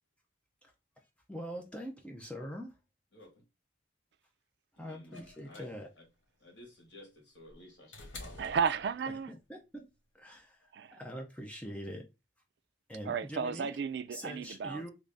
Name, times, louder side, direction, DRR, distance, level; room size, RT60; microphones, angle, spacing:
voice 1, 1.3-2.7 4.8-5.9 9.3-9.9 10.1-12.1 12.9-13.8 14.1-14.9, equal, 5° left, 0.5 m, -43 dB
voice 2, 3.1-3.4 4.8-5.7 6.4-8.6, left 1 dB, 65° left, 1.6 m, -54 dB
sound 1, 5.1-9.4 10.6-10.7, left 2 dB, 85° left, 1.2 m, -51 dB
voice 3, 8.4-9.3 10.7-11.0 13.1-14.8, right 6 dB, 60° right, 0.3 m, -33 dB
3.1 x 2.6 x 3.3 m
head